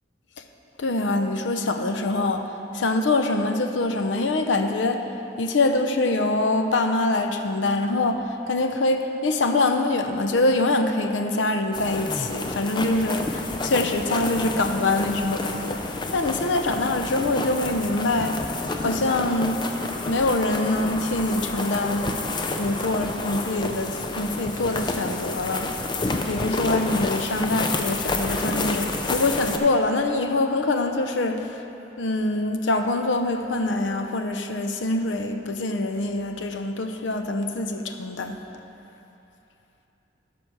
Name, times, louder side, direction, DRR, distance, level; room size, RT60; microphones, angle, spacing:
voice 1, 0.8-5.1 5.4-18.4 18.8-19.6 20.1-25.7 26.2-31.6 32.0-38.4, left 2 dB, 85° left, 7 dB, 0.6 m, -24 dB
sound 1, 11.7-29.6, left 2 dB, 25° left, 0.5 m, -29 dB
12.5 x 6.0 x 4.7 m, 3.0 s
head